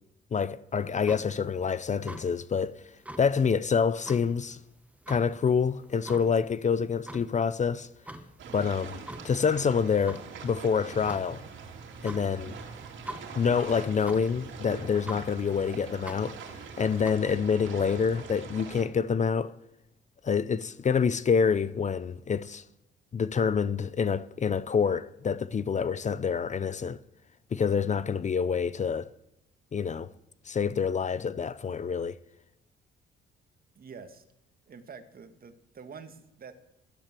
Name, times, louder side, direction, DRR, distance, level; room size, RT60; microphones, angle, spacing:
voice 1, 0.3-2.7 3.2-4.6 5.1-7.9 8.5-8.9 9.2-11.4 12.0-12.6 13.3-16.4 16.8-19.5 20.2-22.6 23.1-27.0 27.5-29.1 29.7-30.1 30.5-32.2, left 6 dB, 35° left, 0.7 m, -27 dB
sound 1, 0.7-17.1, right 1 dB, 5° right, 1.5 m, -47 dB
sound 2, 8.4-18.8, right 5 dB, 70° right, 3.0 m, -43 dB
voice 2, 8.5-8.8 33.8-34.2 34.7-36.5, right 5 dB, 50° right, 2.0 m, -47 dB
15.0 x 12.0 x 7.6 m
cardioid pair, 90°, 20 cm